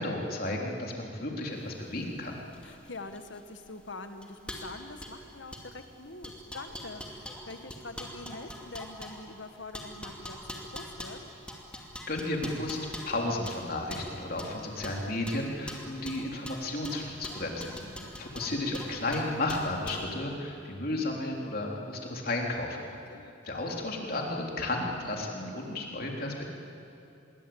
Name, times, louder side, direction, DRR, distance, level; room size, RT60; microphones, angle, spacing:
voice 1, 0.0-2.4 12.1-17.8 18.2-22.9 23.4-26.5, left 2 dB, 50° left, 0 dB, 3.6 m, -33 dB
sound 1, 1.6-20.1, equal, 5° left, 2.5 m, -44 dB
voice 2, 2.6-10.4 10.7-11.2 17.8-18.1 23.1-23.3, left 3 dB, 70° left, 7 dB, 1.8 m, -44 dB
26.5 x 22.0 x 8.8 m, 2.7 s
head